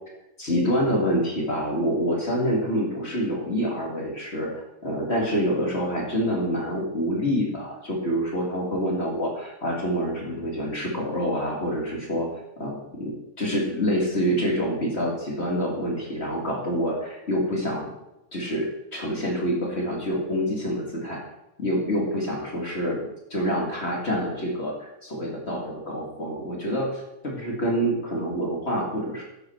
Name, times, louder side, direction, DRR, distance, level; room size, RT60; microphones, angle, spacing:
voice 1, 0.4-12.3 12.6-17.9 18.3-21.2 21.6-23.0 23.3-29.2, equal, 45° left, -2 dB, 2.4 m, -27 dB
11.0 x 8.2 x 4.5 m, 0.91 s
omnidirectional pair, 1.6 m